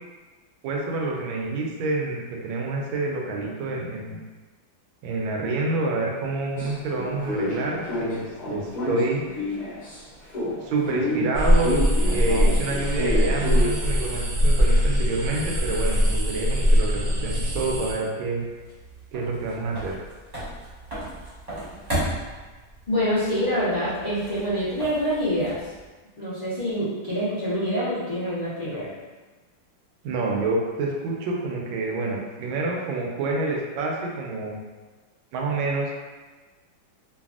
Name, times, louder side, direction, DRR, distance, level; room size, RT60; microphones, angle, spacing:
voice 1, 0.6-4.2 5.0-9.2 10.6-11.9 12.1-18.4 19.1-20.0 30.0-34.6 35.3-36.0, right 3 dB, 85° right, -1 dB, 1.4 m, -27 dB
sound 1, 6.6-10.0 10.3-13.7, left 1 dB, 30° left, 0.9 m, -30 dB
sound 2, 11.3-17.9, equal, 55° right, 0.9 m, -22 dB
sound 3, 18.2-25.9, right 1 dB, 30° right, 0.8 m, -36 dB
voice 2, 22.9-25.6 26.2-28.9, equal, 65° left, -12 dB, 0.4 m, -26 dB
3.3 x 2.3 x 2.3 m, 1.3 s
omnidirectional pair, 2.1 m